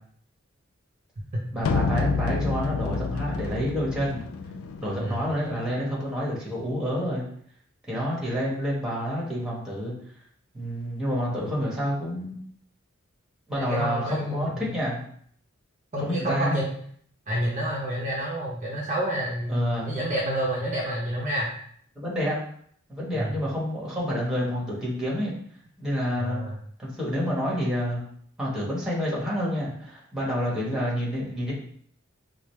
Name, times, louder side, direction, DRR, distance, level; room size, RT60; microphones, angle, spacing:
voice 1, 1.5-4.2 4.8-7.3 7.9-9.9 10.5-12.4 13.5-15.0 16.0-16.6 19.5-20.0 21.9-22.4 22.9-25.3 25.8-26.4 26.8-28.0 28.4-31.5, equal, 5° right, -5 dB, 1.1 m, -28 dB
sound 1, 1.6-5.7, left 4 dB, 90° left, 0.3 m, -29 dB
voice 2, 13.6-14.8 15.9-16.7 17.3-21.5 23.1-23.3 26.2-26.6, equal, 35° right, -4 dB, 0.7 m, -29 dB
4.9 x 2.0 x 3.1 m, 0.62 s
head